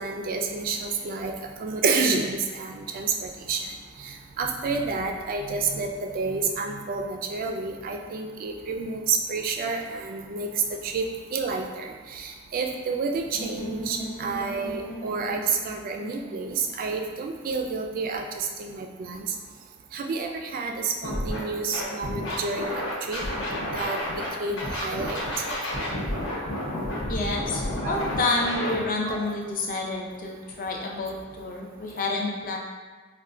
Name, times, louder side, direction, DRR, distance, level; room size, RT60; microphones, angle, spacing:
voice 1, 0.0-1.3 1.6-3.7 4.0-10.5 10.8-19.3 19.9-22.7 23.0-23.2 23.7-25.2 27.8-27.9 29.0-29.3, right 4 dB, 45° right, 3 dB, 0.3 m, -29 dB
sound 1, 13.3-17.3, equal, 10° left, 0.7 m, -39 dB
Scratching (performance technique), 21.0-21.4 21.7-24.3 24.6-28.8, left 1 dB, 65° left, 0.9 m, -30 dB
voice 2, 27.1-32.6, left 2 dB, 40° left, -1 dB, 0.5 m, -29 dB
4.2 x 2.2 x 2.4 m, 1.4 s
head